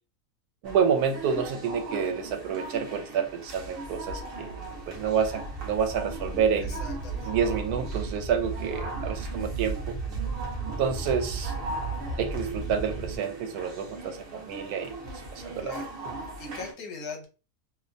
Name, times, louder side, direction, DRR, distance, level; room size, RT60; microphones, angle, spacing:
sound 1, 0.6-16.7, right 2 dB, 55° right, 0.7 m, -40 dB
voice 1, 0.6-6.8 7.2-10.0 10.8-11.5 12.2-14.9 15.3-15.7, right 7 dB, 80° right, 1.1 m, -28 dB
sound 2, 4.0-13.2, right 4 dB, 55° left, 0.8 m, -35 dB
voice 2, 6.6-7.3 15.6-15.9 16.4-17.3, left 5 dB, 75° left, 1.2 m, -40 dB
2.7 x 2.1 x 2.5 m
omnidirectional pair, 1.6 m